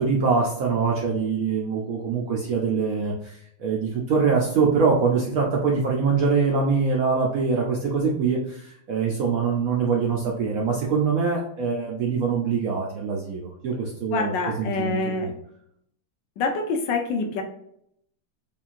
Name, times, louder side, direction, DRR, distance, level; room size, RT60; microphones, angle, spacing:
voice 1, 0.0-15.3, right 5 dB, 70° right, -2 dB, 0.8 m, -24 dB
voice 2, 14.1-15.3 16.4-17.4, left 3 dB, 75° left, 4 dB, 1.3 m, -26 dB
5.3 x 2.6 x 2.5 m, 0.72 s
omnidirectional pair, 2.1 m